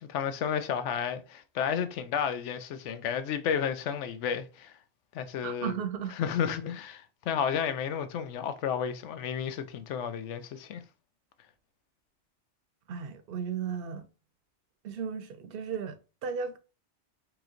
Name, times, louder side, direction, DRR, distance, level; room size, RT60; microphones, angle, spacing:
voice 1, 0.0-4.7 5.1-5.8 6.2-10.8, left 8 dB, 80° left, 0.9 m, -32 dB
voice 2, 5.4-6.1 12.9-14.1 14.8-16.6, right 7 dB, 60° right, 0.7 m, -35 dB
3.1 x 3.0 x 3.6 m
omnidirectional pair, 1.2 m